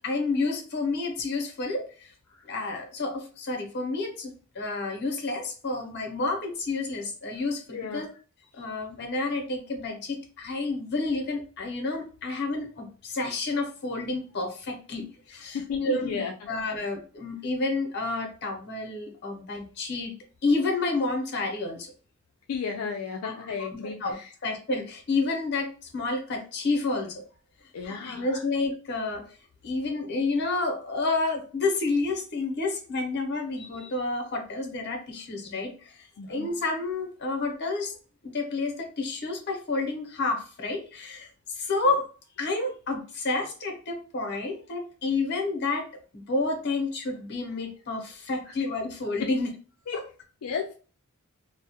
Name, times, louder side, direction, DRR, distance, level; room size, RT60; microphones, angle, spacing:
voice 1, 0.0-2.1 2.5-8.1 8.5-16.2 16.5-20.1 20.4-21.9 23.2-24.2 24.4-27.1 27.8-29.2 29.6-38.0 38.2-41.3 41.5-42.1 42.4-45.8 46.1-49.5 49.9-50.0, left 3 dB, 50° left, 3 dB, 0.7 m, -30 dB
voice 2, 7.7-8.0 15.5-16.3 22.5-24.0 27.7-28.4 36.2-36.5 49.9-50.0 50.4-50.7, left 6 dB, 80° left, 2 dB, 0.4 m, -33 dB
2.3 x 2.1 x 2.7 m, 0.37 s
head